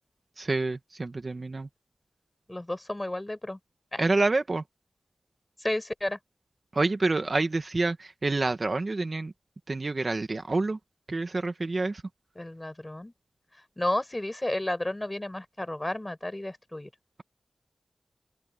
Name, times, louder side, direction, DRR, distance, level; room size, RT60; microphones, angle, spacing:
voice 1, 0.4-1.7 4.0-4.6 6.7-9.3 9.7-10.8 11.1-12.0, right 3 dB, 45° right, 1.5 m, -27 dB
voice 2, 2.5-3.6 3.9-4.1 5.6-6.2 12.4-13.1 13.8-16.9, left 1 dB, 20° left, 5.3 m, -32 dB
wide cardioid pair, 75°, 0 cm